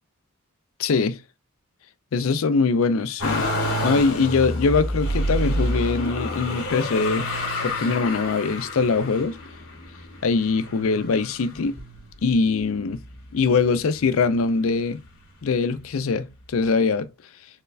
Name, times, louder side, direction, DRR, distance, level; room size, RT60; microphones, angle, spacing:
voice 1, 0.8-1.2 2.1-3.5 3.8-7.3 7.6-9.4 10.2-11.7 12.2-13.0 13.3-15.0 15.4-17.1, left 4 dB, 65° left, 0.4 m, -22 dB
Motor vehicle (road), 3.2-12.3 12.9-13.7 14.0-15.1 16.1-16.2, left 1 dB, 85° left, 2.0 m, -29 dB
4.5 x 3.3 x 2.4 m
head